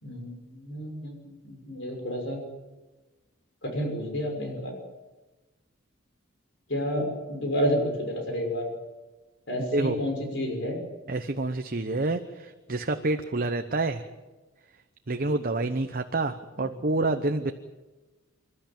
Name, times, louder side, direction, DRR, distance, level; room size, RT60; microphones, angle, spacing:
voice 1, 0.0-1.3 1.6-2.4 3.6-4.7 6.7-8.7 9.5-10.8, equal, 60° left, 3 dB, 6.0 m, -30 dB
voice 2, 11.1-14.1 15.1-17.5, right 2 dB, 45° right, 7 dB, 1.0 m, -28 dB
27.0 x 13.0 x 8.9 m, 1.2 s
head